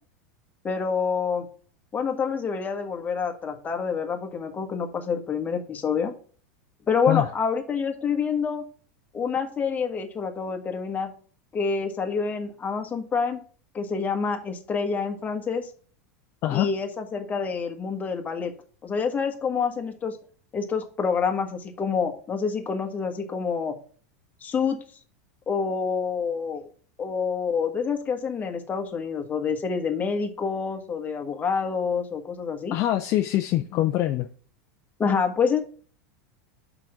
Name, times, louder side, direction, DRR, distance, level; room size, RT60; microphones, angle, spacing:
voice 1, 0.6-1.5 1.9-6.1 6.9-8.6 9.1-11.1 11.5-13.4 13.7-15.7 16.5-18.5 18.8-20.2 20.5-23.7 24.4-24.8 25.5-26.7 27.0-32.8 35.0-35.6, left 5 dB, 20° left, 1.4 m, -27 dB
voice 2, 32.7-34.3, left 14 dB, 45° left, 0.6 m, -24 dB
6.0 x 5.0 x 5.9 m
supercardioid pair, 120°, 8 cm